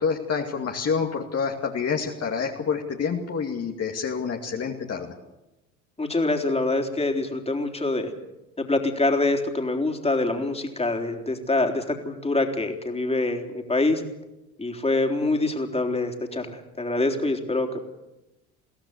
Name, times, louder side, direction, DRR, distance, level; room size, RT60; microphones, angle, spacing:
voice 1, 0.0-5.1, left 6 dB, 40° left, 1 dB, 2.6 m, -27 dB
voice 2, 6.0-8.1 8.6-14.0 14.6-17.8, left 2 dB, 15° left, 3 dB, 3.7 m, -25 dB
23.0 x 16.5 x 8.2 m, 0.97 s
hypercardioid pair, 65°, 40 cm